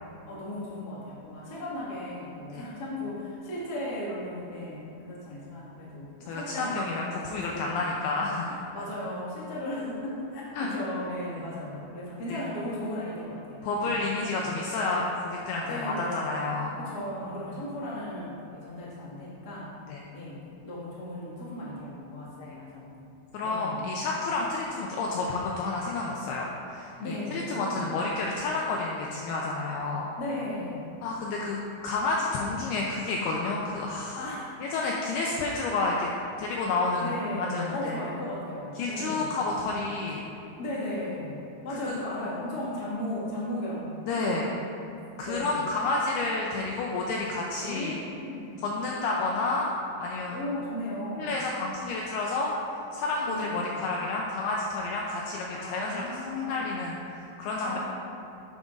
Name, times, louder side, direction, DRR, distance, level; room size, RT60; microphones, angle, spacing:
voice 1, 0.3-8.1 8.7-14.8 15.6-19.7 20.1-23.0 23.4-23.9 27.0-28.1 30.2-31.0 34.1-34.5 37.0-40.0 40.6-44.4 45.2-45.7 47.6-48.7 50.3-51.4 53.3-53.9 55.5-56.8 57.6-57.8, left 1 dB, 75° left, -7 dB, 0.9 m, -36 dB
voice 2, 6.3-8.7 10.5-10.7 12.3-12.4 13.6-16.7 19.9-20.0 22.4-22.6 23.3-30.1 31.0-31.6 31.8-34.2 34.6-36.1 36.4-38.0 38.8-40.3 41.8-42.0 44.1-44.5 45.2-48.0 48.6-49.7 50.0-50.4 51.2-52.5 52.9-57.8, left 3 dB, 90° left, -2 dB, 2.3 m, -30 dB
11.0 x 9.0 x 2.5 m, 2.7 s
omnidirectional pair, 5.2 m